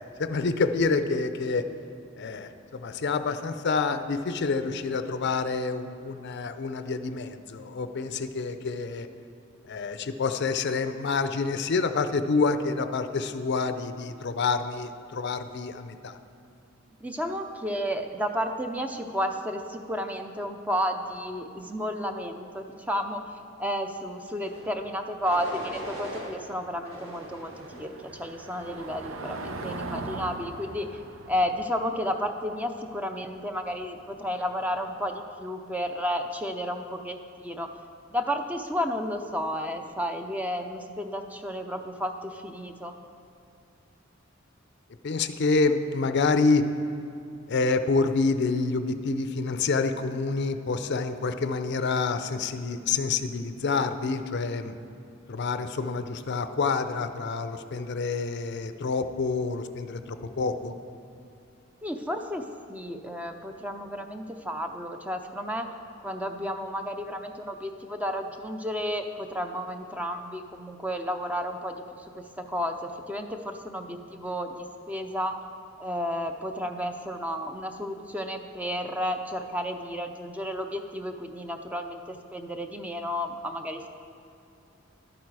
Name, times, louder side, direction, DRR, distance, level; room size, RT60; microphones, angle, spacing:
voice 1, 0.0-1.7 2.2-9.1 9.6-16.2 45.0-46.6 47.5-54.8 55.3-60.7, left 4 dB, 60° left, 10 dB, 0.5 m, -27 dB
voice 2, 17.0-23.2 23.6-30.9 31.3-37.2 37.4-37.7 38.1-42.9 61.8-62.4 62.7-65.7 66.0-72.0 72.4-74.5 74.9-75.4 75.8-83.9, equal, 10° right, 5 dB, 0.5 m, -32 dB
sound 1, 24.3-24.7 25.2-26.3 26.8-27.9 28.4-28.9, right 1 dB, 60° right, 2.7 m, -41 dB
Car passing by / Engine, 24.5-35.2, right 2 dB, 85° right, 0.7 m, -42 dB
12.0 x 8.7 x 4.7 m, 2.7 s
head